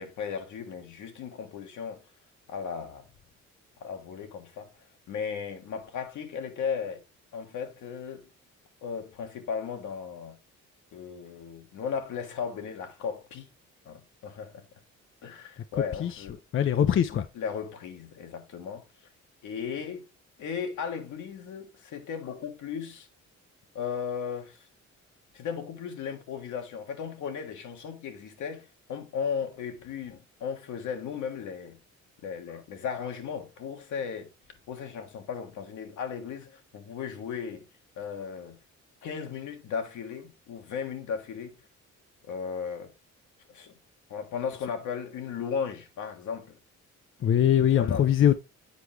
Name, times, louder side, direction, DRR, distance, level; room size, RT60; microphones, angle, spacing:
voice 1, 0.0-2.0 2.5-3.1 3.8-4.7 5.1-7.0 7.3-8.3 8.8-10.4 10.9-13.5 13.8-14.7 15.2-16.4 17.3-18.8 19.4-20.1 20.4-23.1 23.7-24.7 25.3-31.8 32.2-34.3 34.7-37.7 37.9-38.6 39.0-41.5 42.2-42.9 43.5-43.7 44.1-46.6 47.7-48.1, left 6 dB, 75° left, 1.5 m, -36 dB
voice 2, 16.5-17.3 47.2-48.4, left 10 dB, 45° left, 0.5 m, -22 dB
8.2 x 4.7 x 3.2 m
cardioid pair, 90°, 30 cm